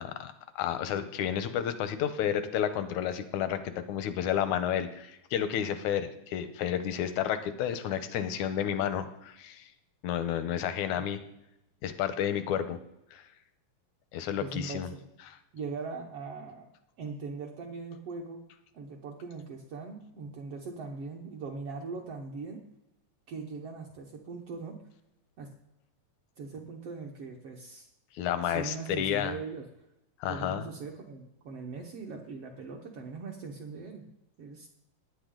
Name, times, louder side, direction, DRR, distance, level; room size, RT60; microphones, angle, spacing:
voice 1, 0.0-9.6 10.0-11.2 11.8-12.8 13.1-13.2 14.1-14.9 15.3-15.4 28.2-29.4 30.2-30.7, left 9 dB, 85° left, 10 dB, 2.3 m, -31 dB
voice 2, 14.4-15.0 15.5-16.7 17.0-18.4 18.7-22.6 23.3-24.8 25.4-25.5 26.4-27.9 28.4-29.7 30.3-34.0 34.4-34.7, right 4 dB, 60° right, 1 dB, 2.0 m, -40 dB
18.5 x 9.5 x 3.9 m, 0.88 s
omnidirectional pair, 3.4 m